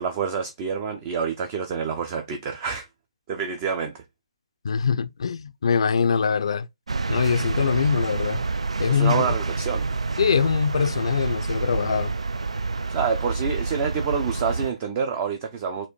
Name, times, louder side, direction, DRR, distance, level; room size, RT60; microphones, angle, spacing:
voice 1, 0.0-2.9 3.3-4.0 8.9-9.9 12.9-15.9, right 6 dB, 30° right, 0.6 m, -27 dB
voice 2, 4.6-6.7 7.1-8.4 8.8-9.2 10.2-12.1, left 6 dB, 60° left, 0.4 m, -23 dB
sound 1, 6.9-14.7, right 3 dB, 80° right, 0.3 m, -28 dB
4.3 x 2.5 x 4.5 m
figure-of-eight pair, 145°, 3 cm